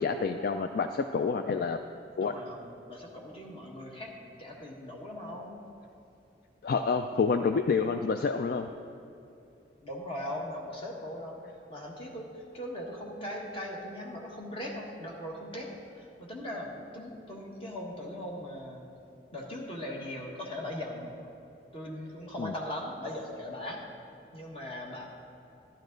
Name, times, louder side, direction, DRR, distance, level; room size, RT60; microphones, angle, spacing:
voice 1, 0.0-1.8 2.2-2.3 6.6-8.7 22.4-22.5, left 5 dB, 50° left, 7 dB, 0.3 m, -28 dB
voice 2, 2.2-5.6 9.8-18.8 19.3-21.1 21.7-23.8 24.3-25.0, left 1 dB, 30° left, -2 dB, 1.5 m, -39 dB
12.0 x 11.5 x 3.9 m, 2.7 s
head